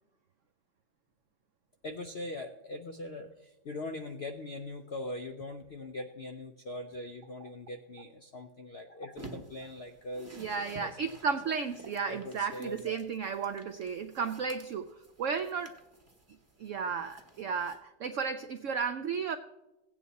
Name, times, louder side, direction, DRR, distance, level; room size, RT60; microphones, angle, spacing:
voice 1, 1.8-10.4 10.8-11.2 12.1-13.0, left 2 dB, 75° left, 6 dB, 0.5 m, -41 dB
sound 1, 9.2-17.8, right 2 dB, 15° right, 0.6 m, -52 dB
voice 2, 10.3-14.9 15.2-15.8 16.6-19.4, right 6 dB, 80° right, 10 dB, 0.7 m, -33 dB
16.5 x 8.5 x 4.1 m, 1.0 s
omnidirectional pair, 1.9 m